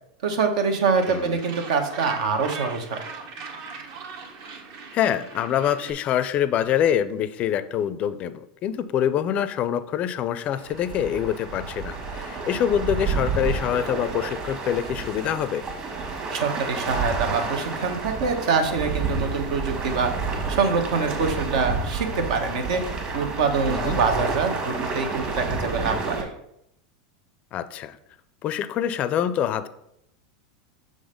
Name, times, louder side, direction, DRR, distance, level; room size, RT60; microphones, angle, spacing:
voice 1, 0.2-3.0 16.3-20.1 20.5-22.8 23.1-26.3, right 5 dB, 75° right, 6 dB, 1.1 m, -25 dB
Gull seagull, 0.9-5.9, right 4 dB, 55° right, 1.1 m, -39 dB
voice 2, 1.1-1.4 4.9-15.6 23.7-24.0 27.5-28.0 28.4-29.7, left 10 dB, 35° left, 13 dB, 0.4 m, -25 dB
sound 1, 10.5-26.2, right 4 dB, 35° right, 1.5 m, -30 dB
6.4 x 3.9 x 5.1 m, 0.78 s
supercardioid pair, 135°, 4 cm